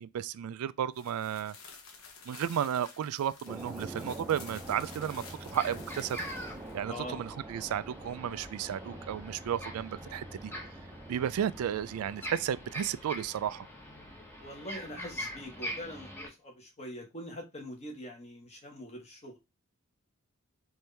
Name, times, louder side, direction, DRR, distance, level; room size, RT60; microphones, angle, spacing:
voice 1, 0.0-1.6 2.3-6.2 6.7-10.5 11.1-13.7, right 9 dB, 90° right, 0.3 m, -33 dB
sound 1, 0.9-6.8, left 5 dB, 70° left, 0.9 m, -51 dB
sound 2, 3.5-12.8, right 1 dB, 10° right, 0.6 m, -46 dB
sound 3, 4.7-16.3, equal, 10° left, 1.0 m, -44 dB
voice 2, 6.9-7.2 14.3-19.4, equal, 30° left, 1.4 m, -43 dB
4.5 x 2.7 x 3.3 m
head